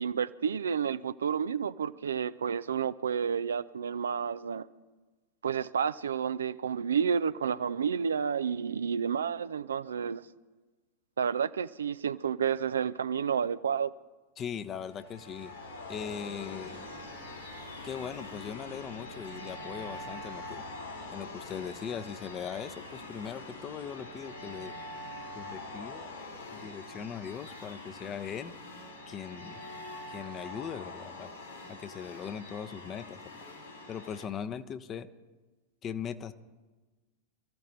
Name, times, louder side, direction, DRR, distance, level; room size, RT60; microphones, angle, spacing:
voice 1, 0.0-4.7 5.4-10.3 11.2-13.9, right 7 dB, 70° right, 0.4 m, -30 dB
voice 2, 14.4-15.5 15.9-16.9 17.8-20.6 21.1-24.8 25.3-26.1 26.5-29.8 30.1-31.3 31.7-33.4 33.9-35.1 35.8-36.3, left 8 dB, 25° left, 0.9 m, -40 dB
sound 1, 14.8-34.2, left 2 dB, 80° left, 4.7 m, -44 dB
27.0 x 14.5 x 3.3 m
figure-of-eight pair, 90°, 0 cm